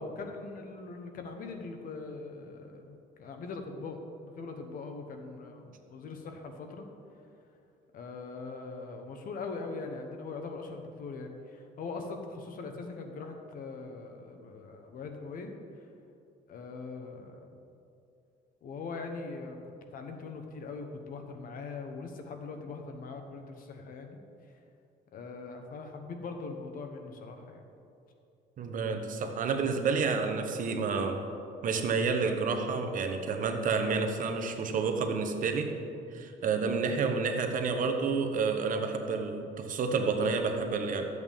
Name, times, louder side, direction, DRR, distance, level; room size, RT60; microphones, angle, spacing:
voice 1, 0.0-4.0 4.2-6.9 7.9-15.9 16.5-17.5 18.6-19.6 19.9-24.2 25.1-27.7 36.0-36.2, left 4 dB, 55° left, 4 dB, 1.1 m, -41 dB
voice 2, 28.6-31.2 31.6-35.7 36.1-41.0, right 4 dB, 50° right, 5 dB, 1.0 m, -29 dB
13.0 x 8.0 x 3.6 m, 2.6 s
cardioid pair, 110°, 17 cm